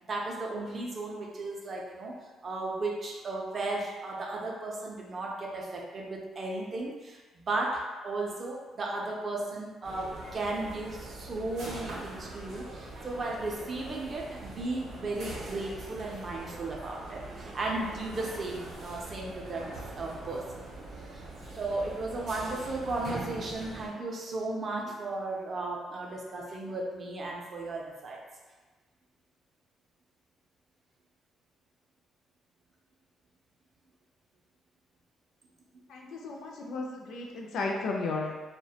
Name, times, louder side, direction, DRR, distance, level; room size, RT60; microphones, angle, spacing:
voice 1, 0.0-2.1 2.4-19.7 19.9-20.6 21.1-21.3 21.6-28.2, right 2 dB, 35° right, -1 dB, 0.4 m, -35 dB
sound 1, 9.8-23.9, right 2 dB, 80° right, 0.6 m, -43 dB
voice 2, 35.9-38.3, left 3 dB, 70° left, 0 dB, 0.4 m, -34 dB
2.3 x 2.1 x 2.7 m, 1.3 s
cardioid pair, 150°, 0 cm